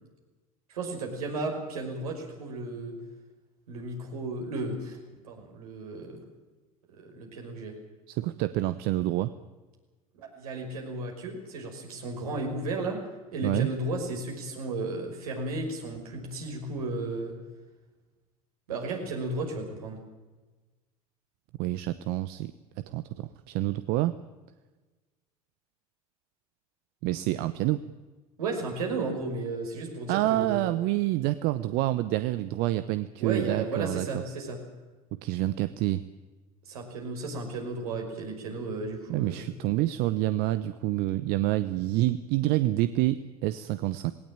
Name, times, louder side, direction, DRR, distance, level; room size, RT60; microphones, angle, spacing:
voice 1, 0.7-3.0 3.7-6.2 6.9-7.7 10.1-13.0 13.3-17.3 18.7-20.0 28.4-30.7 33.2-34.6 36.7-39.5, right 3 dB, 80° right, 1 dB, 5.6 m, -34 dB
voice 2, 8.1-9.3 13.4-13.7 21.6-22.5 22.9-24.2 27.0-27.8 30.1-34.1 35.2-36.0 39.1-44.1, right 16 dB, 60° right, 13 dB, 0.9 m, -27 dB
19.0 x 18.0 x 8.9 m, 1.2 s
hypercardioid pair, 75°, 19 cm